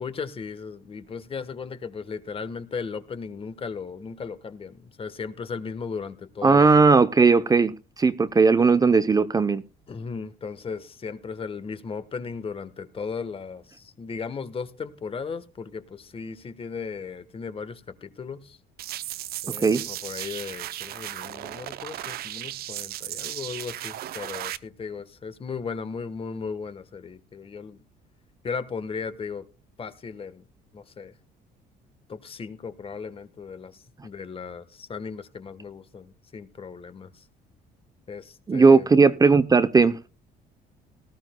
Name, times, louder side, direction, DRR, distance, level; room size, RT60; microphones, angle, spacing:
voice 1, 0.0-6.8 9.9-18.6 19.4-27.8 28.4-29.5 29.8-30.4 30.7-31.1 32.1-37.2 38.1-38.9, left 5 dB, 35° left, 1.3 m, -36 dB
voice 2, 6.4-7.7 8.0-9.6 19.6-19.8 38.5-40.1, right 4 dB, 20° right, 0.7 m, -17 dB
sound 1, 18.8-24.6, right 13 dB, 65° right, 0.7 m, -35 dB
18.5 x 14.5 x 2.3 m
cardioid pair, 110°, 17 cm